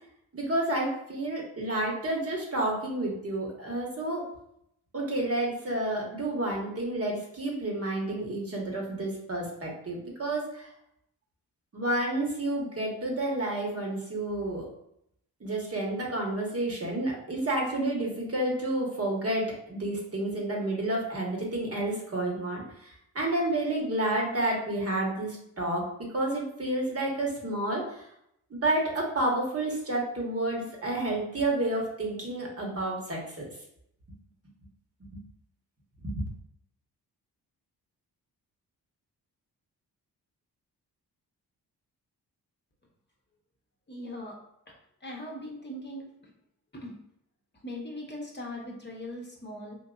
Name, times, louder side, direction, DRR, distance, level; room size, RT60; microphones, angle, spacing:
voice 1, 0.3-4.2 4.9-10.7 11.7-14.7 15.4-25.9 26.1-28.1 28.5-33.5 35.1-35.2 36.0-36.3, right 1 dB, 35° right, -1 dB, 1.3 m, -30 dB
voice 2, 43.9-44.3 45.0-46.0 46.7-47.0 47.6-49.8, left 1 dB, 25° left, -1 dB, 0.9 m, -39 dB
3.8 x 2.6 x 2.4 m, 0.76 s
supercardioid pair, 50°, 39 cm